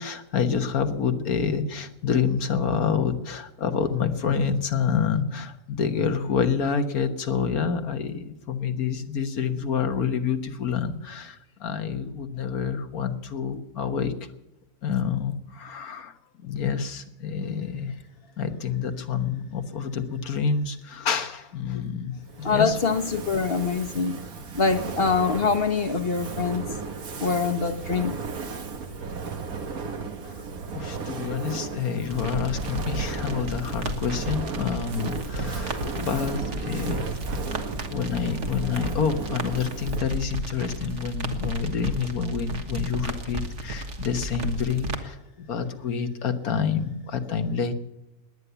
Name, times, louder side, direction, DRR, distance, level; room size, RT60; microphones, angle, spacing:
voice 1, 0.0-14.1 14.8-16.1 16.4-17.9 18.4-22.8 30.7-37.1 37.9-47.7, left 6 dB, 85° left, 7 dB, 1.8 m, -28 dB
Fire, 22.2-40.2, right 4 dB, 80° right, 1.9 m, -35 dB
voice 2, 22.4-24.2 24.5-26.6 27.2-28.2, left 4 dB, 45° left, 8 dB, 1.2 m, -24 dB
sound 1, 32.1-45.0, right 1 dB, 55° right, 1.9 m, -33 dB
20.5 x 9.7 x 7.0 m, 0.95 s
omnidirectional pair, 1.5 m